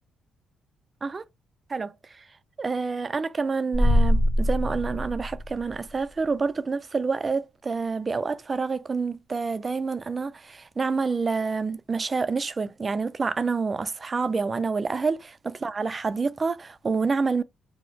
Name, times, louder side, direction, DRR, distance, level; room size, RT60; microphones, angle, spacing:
voice 1, 1.7-2.2 2.6-17.4, right 4 dB, 30° right, 0.3 m, -28 dB
sound 1, 3.7-6.0, equal, 5° left, 1.1 m, -23 dB
2.5 x 2.0 x 3.0 m
cardioid pair, 90°, 0 cm